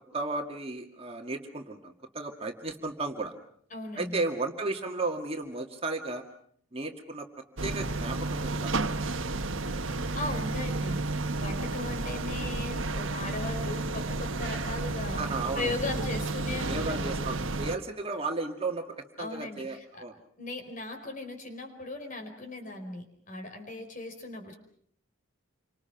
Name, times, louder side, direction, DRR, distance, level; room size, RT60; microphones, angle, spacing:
voice 1, 0.1-3.3 4.0-6.2 6.7-7.3 7.6-8.7 15.2-15.8 16.7-18.9 19.2-20.1, right 3 dB, 30° right, 3 dB, 2.0 m, -34 dB
voice 2, 3.7-4.2 9.9-11.0 11.4-15.2 15.6-17.2 19.2-20.0 20.4-24.5, left 2 dB, 40° left, 4 dB, 4.8 m, -38 dB
sound 1, 7.6-17.8, right 2 dB, 70° right, 1.4 m, -32 dB
29.0 x 25.0 x 5.9 m, 0.62 s
head